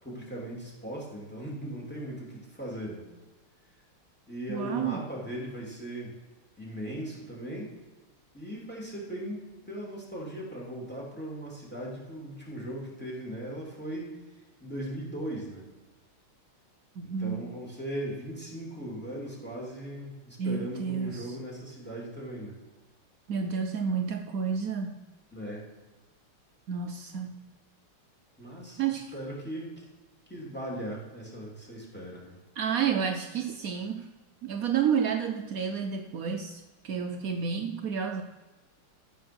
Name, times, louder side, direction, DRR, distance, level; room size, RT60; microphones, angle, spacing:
voice 1, 0.0-3.0 4.3-6.1 6.6-7.7 8.3-14.2 14.6-15.6 17.0-22.6 25.3-25.7 28.4-29.8 30.3-32.4, right 1 dB, 5° left, -3 dB, 2.9 m, -38 dB
voice 2, 4.5-5.0 17.0-17.5 20.4-21.4 23.3-25.0 26.7-27.4 28.8-29.1 32.6-34.1 34.4-38.2, right 7 dB, 80° right, 5 dB, 0.7 m, -30 dB
14.0 x 7.8 x 6.2 m, 1.2 s
omnidirectional pair, 2.4 m